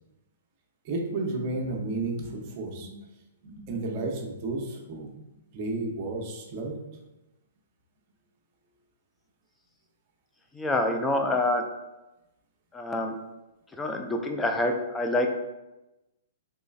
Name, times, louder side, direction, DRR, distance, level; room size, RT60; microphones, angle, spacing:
voice 1, 0.8-2.9 3.4-5.1 5.5-6.8, right 2 dB, 40° right, 0 dB, 0.7 m, -32 dB
voice 2, 10.6-11.6 12.7-13.1 13.8-15.4, left 1 dB, 10° left, 4 dB, 0.3 m, -26 dB
3.8 x 3.1 x 2.4 m, 1.0 s
hypercardioid pair, 150°, 0 cm